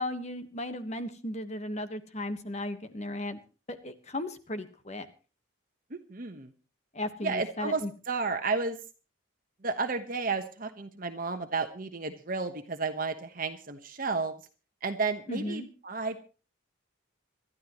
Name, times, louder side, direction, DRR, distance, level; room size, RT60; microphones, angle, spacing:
voice 1, 0.0-3.4 3.7-5.1 6.9-7.9 15.3-15.7, left 1 dB, 35° left, 9 dB, 1.3 m, -35 dB
voice 2, 5.9-6.5 7.2-7.8 8.1-8.8 9.6-14.3 14.8-16.2, right 4 dB, 40° right, 6 dB, 1.2 m, -32 dB
26.0 x 12.5 x 3.1 m, 0.36 s
head